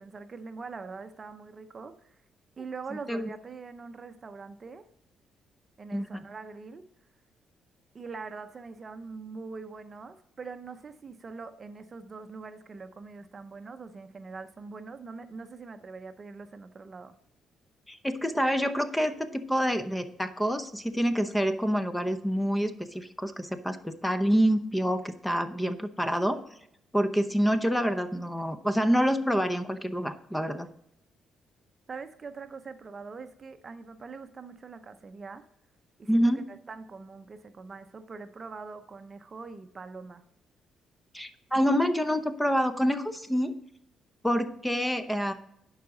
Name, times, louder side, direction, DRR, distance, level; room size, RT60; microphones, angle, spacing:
voice 1, 0.0-2.2 2.6-4.8 5.8-6.8 7.9-17.1 31.9-35.4 36.0-40.2, right 4 dB, 35° right, 9 dB, 0.6 m, -43 dB
voice 2, 5.9-6.2 17.9-26.4 26.9-30.7 36.1-36.4 41.1-43.5 44.2-45.3, equal, 5° left, 10 dB, 0.7 m, -27 dB
11.0 x 4.8 x 3.8 m, 0.74 s
cardioid pair, 90°, 0 cm